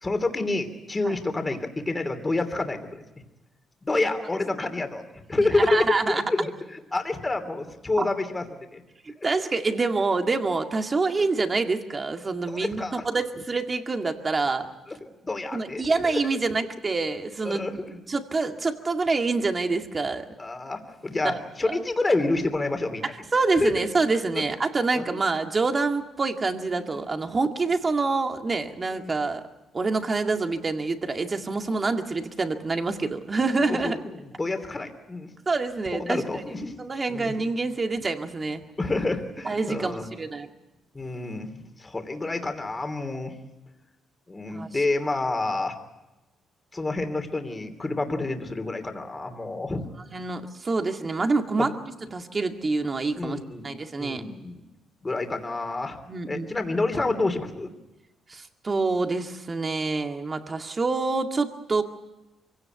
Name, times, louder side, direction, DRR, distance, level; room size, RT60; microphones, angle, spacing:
voice 1, 0.0-3.0 3.8-5.0 5.3-8.4 8.7-8.8 9.2-9.3 11.2-11.3 12.5-13.0 14.9-15.0 15.2-16.2 17.4-17.8 20.4-23.0 23.6-23.9 24.3-24.4 24.9-25.0 26.9-27.2 28.9-29.1 33.7-35.3 35.9-36.8 37.1-37.4 38.8-40.0 40.9-43.4 44.3-45.8 46.7-49.8 51.6-51.7 53.2-53.6 54.0-54.6 55.0-56.0 56.3-57.7, left 2 dB, 20° left, 6 dB, 3.0 m, -28 dB
voice 2, 5.4-6.3 8.0-8.1 9.1-14.7 15.5-20.3 21.2-21.4 21.6-21.8 23.3-29.4 29.7-34.0 35.5-36.4 36.8-38.6 39.4-40.5 44.5-44.7 50.1-51.7 52.1-53.4 53.6-54.2 56.1-56.5 58.3-61.8, right 3 dB, 30° right, 5 dB, 2.1 m, -26 dB
23.5 x 17.0 x 9.2 m, 1.0 s
cardioid pair, 90°, 0 cm